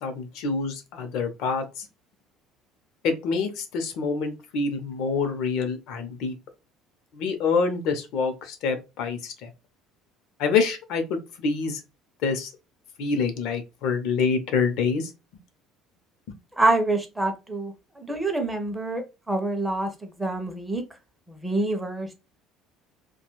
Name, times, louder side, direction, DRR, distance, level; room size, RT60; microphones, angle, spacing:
voice 1, 0.0-1.9 3.0-6.3 7.1-9.5 10.4-11.8 12.2-12.5 13.0-15.1, left 5 dB, 65° left, 0.6 m, -26 dB
voice 2, 16.6-20.8 21.3-22.1, right 2 dB, 5° right, 0.5 m, -26 dB
2.4 x 2.2 x 3.0 m
cardioid pair, 160°, 0 cm